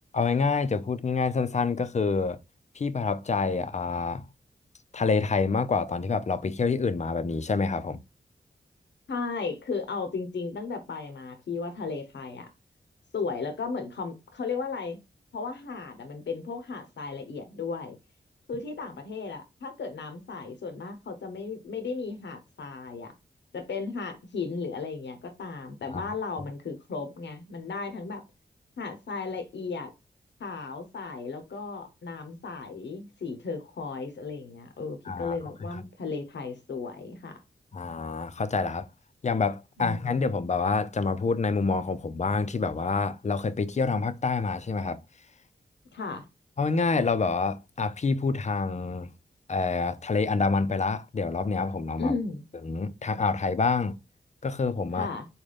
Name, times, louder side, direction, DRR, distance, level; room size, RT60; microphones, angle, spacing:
voice 1, 0.1-2.4 2.8-4.2 4.9-8.0 25.9-26.0 35.1-35.4 37.7-38.9 39.2-45.0 46.6-49.1 49.5-52.1 52.6-54.0 54.4-55.1, left 4 dB, 40° left, 0.5 m, -27 dB
voice 2, 9.1-12.5 13.1-15.0 15.3-18.0 18.5-23.1 23.5-28.2 28.8-29.9 30.4-37.4 39.8-40.3 45.9-46.2 52.0-52.4 54.9-55.3, left 4 dB, 80° left, 0.8 m, -35 dB
3.9 x 2.2 x 3.2 m
cardioid pair, 45°, 18 cm